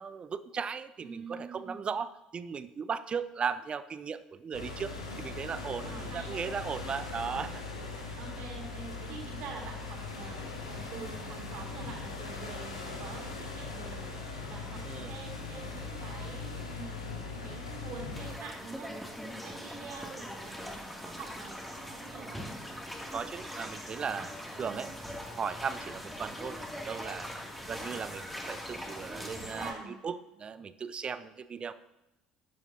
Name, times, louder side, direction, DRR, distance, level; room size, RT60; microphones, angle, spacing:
voice 1, 0.0-7.6 14.8-15.2 23.1-24.3 24.6-24.9 25.4-27.3 27.7-31.7, right 6 dB, 35° right, 14 dB, 0.6 m, -37 dB
voice 2, 1.0-1.9 5.8-6.5 8.1-22.4 24.5-24.9 29.0-29.9, right 5 dB, 55° right, -1 dB, 3.4 m, -46 dB
sound 1, 4.5-18.4, left 4 dB, 85° left, 1.6 m, -40 dB
sound 2, 18.1-29.7, equal, 5° left, 2.5 m, -42 dB
14.5 x 10.5 x 2.8 m, 0.96 s
figure-of-eight pair, 55°, 3 cm